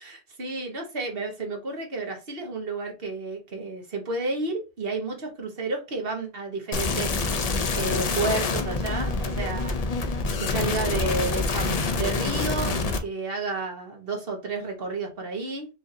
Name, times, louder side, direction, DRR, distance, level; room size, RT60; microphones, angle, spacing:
voice 1, 0.4-9.7 10.4-15.7, right 3 dB, 55° right, 1.3 m, -31 dB
sound 1, 6.7-13.0, left 3 dB, 45° left, 0.5 m, -26 dB
5.0 x 2.6 x 2.7 m
omnidirectional pair, 1.2 m